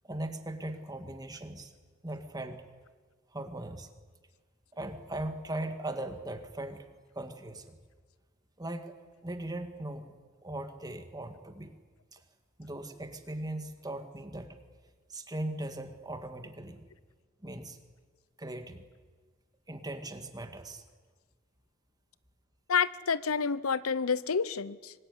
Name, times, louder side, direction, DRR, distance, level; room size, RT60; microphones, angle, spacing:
voice 1, 0.0-1.7 2.0-2.7 3.3-3.9 4.7-7.8 8.6-8.9 9.2-10.1 10.4-11.8 12.1-12.2 12.6-14.6 15.1-16.8 17.4-17.8 18.4-18.8 19.7-20.8, right 1 dB, 20° right, 2.1 m, -39 dB
voice 2, 22.7-24.9, left 6 dB, 90° left, 0.8 m, -29 dB
25.0 x 20.5 x 9.7 m
head